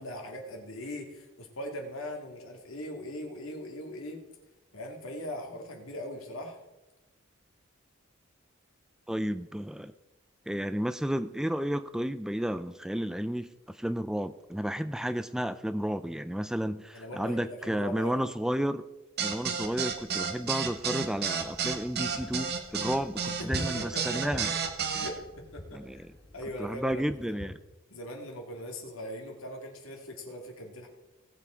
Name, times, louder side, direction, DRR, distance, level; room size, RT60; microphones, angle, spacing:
voice 1, 0.0-4.2 4.7-6.6 16.9-18.2 23.2-24.2 24.9-25.2 25.5-26.0 26.3-27.5 27.9-30.9, left 1 dB, 75° left, 2 dB, 2.3 m, -40 dB
voice 2, 9.1-9.9 10.5-18.8 19.2-24.5 25.7-26.1 26.6-27.6, equal, 5° right, 12 dB, 0.3 m, -32 dB
sound 1, 19.2-25.1, right 6 dB, 50° right, 1.4 m, -31 dB
sound 2, 21.4-27.5, left 1 dB, 25° left, 2.7 m, -45 dB
18.0 x 7.3 x 4.4 m, 1.1 s
head